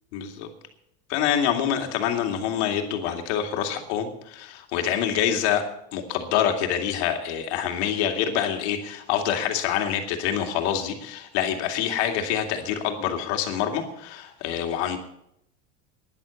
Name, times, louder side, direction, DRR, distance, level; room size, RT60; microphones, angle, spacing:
voice 1, 0.1-0.5 1.1-5.7 5.9-15.0, left 9 dB, 75° left, 4 dB, 2.4 m, -26 dB
12.0 x 10.5 x 7.1 m, 0.75 s
cardioid pair, 170°, 34 cm